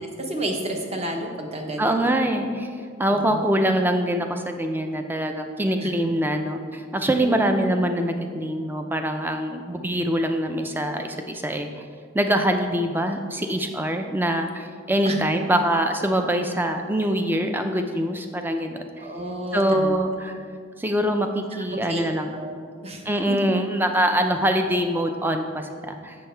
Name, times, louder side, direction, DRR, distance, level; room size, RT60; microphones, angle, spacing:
voice 1, 0.2-2.1 3.1-3.4 5.8-5.9 7.2-7.5 15.0-15.2 19.0-19.9 21.7-22.1 22.3-22.5 22.8-23.0 24.7-24.8, right 1 dB, 30° right, 2 dB, 0.8 m, -31 dB
voice 2, 1.8-2.7 3.0-11.8 12.1-19.1 19.5-20.4 20.8-22.4 23.0-26.2, right 1 dB, 10° right, 5 dB, 0.4 m, -24 dB
7.4 x 6.6 x 4.4 m, 2.1 s
head